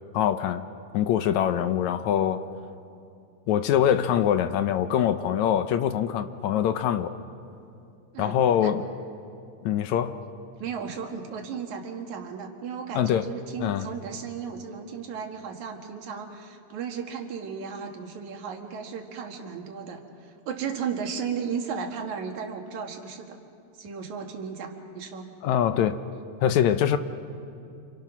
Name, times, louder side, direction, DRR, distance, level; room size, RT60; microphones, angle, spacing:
voice 1, 0.1-0.7 0.9-2.4 3.5-7.2 8.2-8.9 9.6-10.2 12.9-13.3 13.6-13.9 25.4-26.0 26.4-27.0, left 9 dB, 75° left, 1.9 m, -24 dB
voice 2, 8.1-8.7 10.6-23.4 23.7-25.3, right 6 dB, 65° right, 3.1 m, -35 dB
28.0 x 26.5 x 6.1 m
omnidirectional pair, 3.7 m